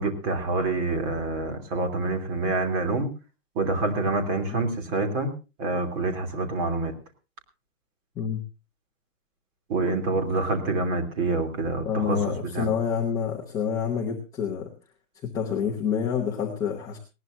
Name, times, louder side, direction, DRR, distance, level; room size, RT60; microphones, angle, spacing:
voice 1, 0.0-3.1 3.5-5.3 5.6-6.9 9.7-12.7, right 2 dB, 25° right, 5 dB, 3.0 m, -27 dB
voice 2, 11.8-14.7 15.2-17.0, left 7 dB, 5° left, -2 dB, 0.9 m, -28 dB
19.5 x 18.5 x 2.6 m, 0.31 s
hypercardioid pair, 175°, 44 cm